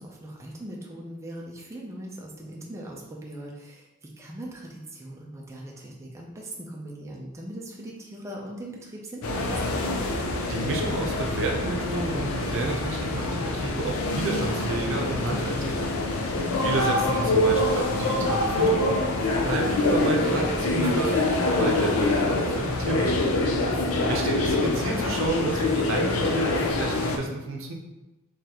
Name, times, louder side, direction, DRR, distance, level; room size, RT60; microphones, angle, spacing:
voice 1, 0.0-3.9 4.2-9.5 16.3-16.7, right 1 dB, 15° right, -3 dB, 0.5 m, -40 dB
sound 1, 9.2-27.2, left 2 dB, 90° left, 0.5 m, -25 dB
voice 2, 10.5-15.9 16.6-19.0 19.4-21.2 21.5-23.3 24.1-27.7, right 2 dB, 65° right, 1 dB, 0.6 m, -30 dB
3.8 x 3.2 x 2.9 m, 1.0 s
head